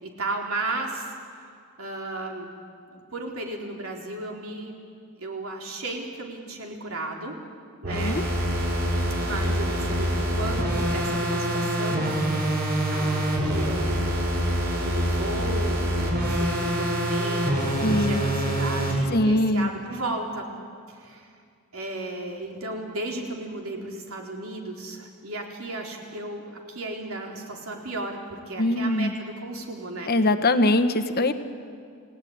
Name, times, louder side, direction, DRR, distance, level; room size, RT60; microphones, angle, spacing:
voice 1, 0.0-1.4 1.8-2.5 2.9-4.7 5.2-7.4 7.8-8.2 9.2-12.5 12.9-14.3 14.8-20.5 20.9-21.3 21.7-30.1, right 2 dB, 70° right, 1 dB, 4.0 m, -34 dB
sound 1, 7.8-19.0, equal, 45° right, 5.7 m, -25 dB
voice 2, 7.9-8.2 17.8-18.2 19.1-19.7 28.6-29.1 30.1-31.3, left 1 dB, 45° left, 9 dB, 1.3 m, -22 dB
29.0 x 18.0 x 9.6 m, 2.2 s
head